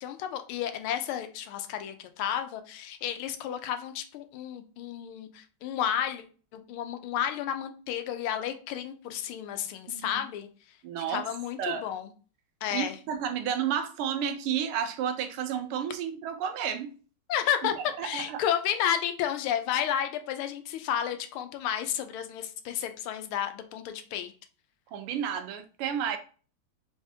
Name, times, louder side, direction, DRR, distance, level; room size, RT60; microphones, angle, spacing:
voice 1, 0.0-6.2 6.5-10.5 11.1-12.1 12.6-13.0 17.3-24.3, left 10 dB, 80° left, 1.4 m, -32 dB
voice 2, 9.9-10.2 10.8-11.3 11.6-11.9 12.7-16.9 18.0-18.4 24.9-26.2, right 8 dB, 85° right, 1.5 m, -31 dB
4.0 x 3.5 x 2.7 m
omnidirectional pair, 2.4 m